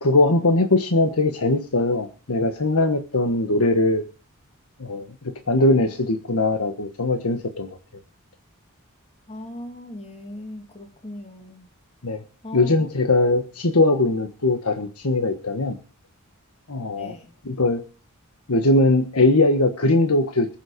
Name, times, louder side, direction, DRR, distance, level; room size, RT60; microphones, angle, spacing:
voice 1, 0.0-4.0 4.8-5.1 5.5-7.7 12.0-12.2 12.5-15.8 16.7-17.1 17.4-17.8 18.5-20.5, left 2 dB, 90° left, 1.4 m, -20 dB
voice 2, 9.3-11.7 12.4-12.8 17.0-17.3, left 1 dB, 30° left, 2.7 m, -38 dB
21.0 x 7.3 x 5.2 m
head